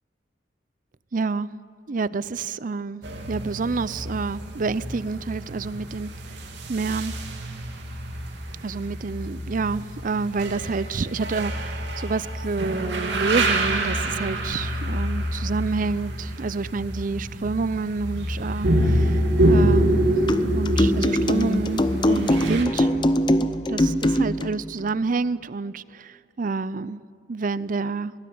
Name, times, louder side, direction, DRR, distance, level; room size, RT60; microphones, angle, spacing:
voice 1, 1.1-1.5 1.9-3.0 3.3-7.1 8.6-19.2 19.5-20.2 20.5-22.9 23.7-27.0 27.3-28.1, right 4 dB, 45° right, 0.5 m, -28 dB
sound 1, 3.0-22.6, right 1 dB, 65° right, 2.8 m, -26 dB
sound 2, 20.3-24.6, left 1 dB, 25° left, 0.8 m, -22 dB
22.5 x 18.0 x 9.4 m
head